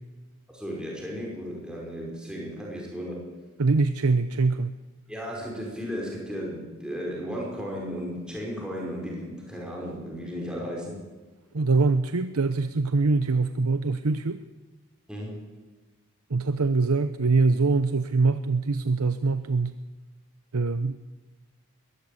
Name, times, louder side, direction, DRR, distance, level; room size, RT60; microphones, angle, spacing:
voice 1, 0.5-3.3 5.1-11.0 15.1-15.5, equal, 5° right, -3 dB, 5.2 m, -35 dB
voice 2, 3.6-4.7 11.5-14.4 16.3-19.8 20.5-21.0, right 3 dB, 90° right, 11 dB, 0.8 m, -23 dB
22.0 x 14.5 x 8.5 m, 1.2 s
head